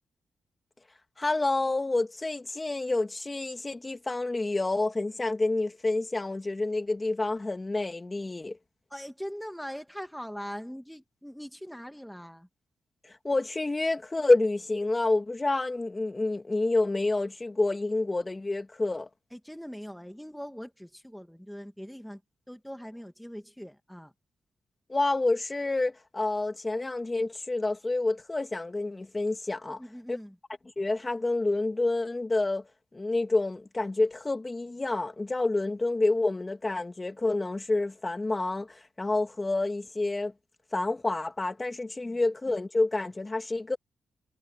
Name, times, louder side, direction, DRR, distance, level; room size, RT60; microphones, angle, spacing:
voice 1, 1.2-8.6 13.0-19.1 24.9-29.8 30.1-30.2 30.8-40.3 40.7-43.8, left 2 dB, 25° left, 2.9 m, -28 dB
voice 2, 8.9-12.5 19.3-22.2 22.5-24.1 29.8-30.4 42.0-42.2, equal, ahead, 2.1 m, -41 dB
supercardioid pair, 55°, 0 cm